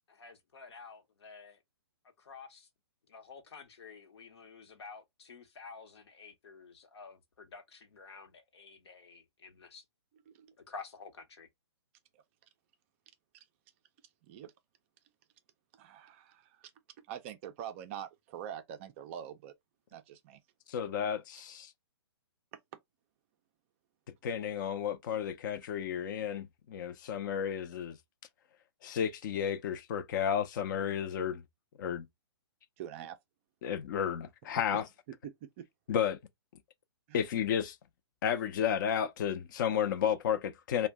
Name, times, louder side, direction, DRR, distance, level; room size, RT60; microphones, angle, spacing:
voice 1, 0.0-1.6 2.2-2.7 3.1-9.8 10.7-11.5, left 5 dB, 75° left, 0.9 m, -50 dB
voice 2, 15.7-16.7 17.1-19.5 19.9-20.4 32.8-33.2 34.7-34.8 35.2-35.7 37.1-37.2, right 10 dB, 30° right, 0.4 m, -44 dB
voice 3, 20.7-21.7 24.2-28.0 28.8-31.4 31.8-32.1 33.6-34.8 35.9-36.2 37.1-37.8 38.2-40.9, left 8 dB, 45° left, 0.5 m, -32 dB
2.6 x 2.1 x 3.3 m
hypercardioid pair, 145°, 14 cm